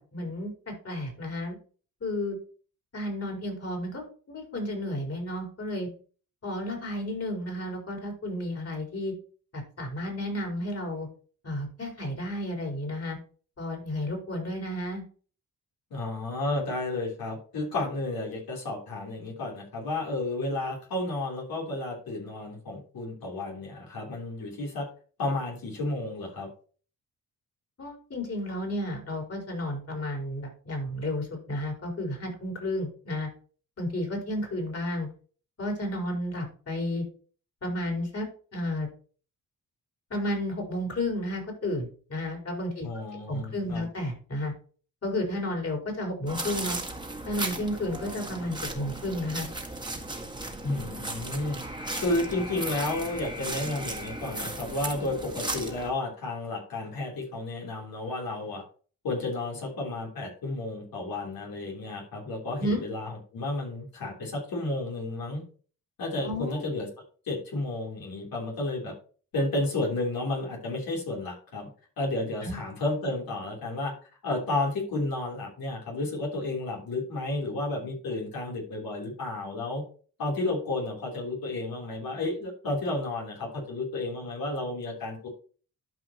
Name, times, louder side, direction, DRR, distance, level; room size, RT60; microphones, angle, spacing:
voice 1, 0.0-1.6 2.0-2.4 2.9-4.0 4.3-5.9 6.4-9.1 9.5-11.1 11.4-13.2 13.6-15.0 27.8-33.3 33.8-35.1 35.6-37.0 37.6-38.3 38.5-38.9 40.1-44.5 45.0-46.8 47.2-49.5 62.6-62.8 66.2-66.5 72.4-72.6, left 1 dB, 45° left, 0 dB, 4.4 m, -32 dB
voice 2, 15.9-24.9 25.2-26.5 42.8-43.8 50.6-51.6 52.0-58.6 59.0-65.4 66.0-66.9 67.3-68.9 69.3-71.7 72.0-73.9 74.2-79.8 80.2-85.3, left 2 dB, 75° left, -2 dB, 3.5 m, -32 dB
sound 1, 46.3-55.9, right 2 dB, 10° right, 1.7 m, -36 dB
12.0 x 5.1 x 2.9 m, 0.40 s
cardioid pair, 75°, 36 cm